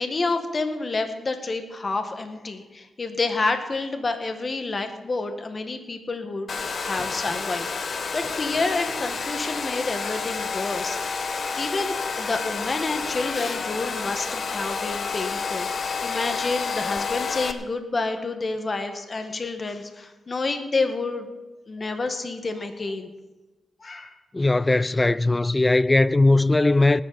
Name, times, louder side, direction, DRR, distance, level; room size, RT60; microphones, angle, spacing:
voice 1, 0.0-11.3 11.6-21.3 21.7-23.1 23.8-24.2, left 3 dB, 40° left, 1.7 m, -29 dB
Domestic sounds home sounds, 6.5-17.5, left 5 dB, 55° left, 1.0 m, -29 dB
voice 2, 24.3-27.0, left 2 dB, 20° left, 0.4 m, -19 dB
19.0 x 11.0 x 4.3 m
cardioid pair, 70°, 0 cm